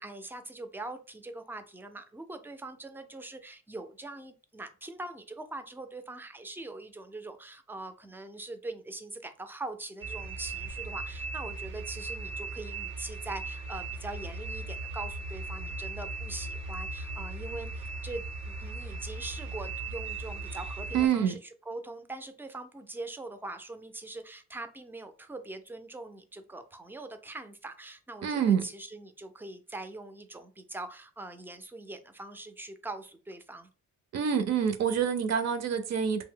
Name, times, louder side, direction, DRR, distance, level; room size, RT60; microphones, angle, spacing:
voice 1, 0.0-21.4 21.7-33.7, right 2 dB, 5° right, 0.3 m, -42 dB
sound 1, 10.0-21.1, right 3 dB, 90° right, 1.0 m, -38 dB
voice 2, 20.9-21.4 28.2-28.6 34.1-36.2, right 7 dB, 60° right, 0.5 m, -26 dB
2.6 x 2.0 x 3.7 m
cardioid pair, 110°, 30 cm